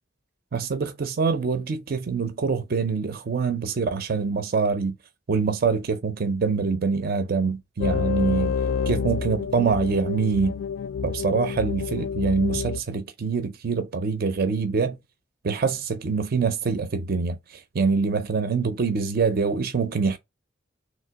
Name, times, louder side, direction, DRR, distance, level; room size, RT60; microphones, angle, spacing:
voice 1, 0.5-4.9 5.3-8.6 8.9-10.5 11.0-15.0 15.4-20.2, right 5 dB, 50° right, 0.5 m, -25 dB
sound 1, 7.8-12.8, left 5 dB, 90° left, 0.3 m, -28 dB
3.1 x 2.9 x 4.5 m
head